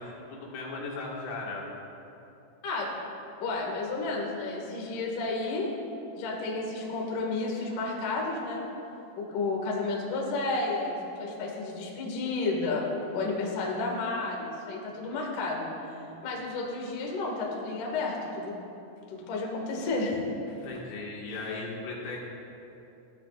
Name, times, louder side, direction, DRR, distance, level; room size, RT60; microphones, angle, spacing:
voice 1, 0.0-1.6 16.1-16.4 20.5-22.2, left 3 dB, 70° left, -4 dB, 4.3 m, -37 dB
voice 2, 3.4-5.7 6.2-8.6 9.2-12.9 13.1-15.7 16.2-18.5 19.1-20.2, left 3 dB, 50° left, -2 dB, 2.8 m, -31 dB
21.0 x 15.5 x 2.5 m, 2.8 s
omnidirectional pair, 5.9 m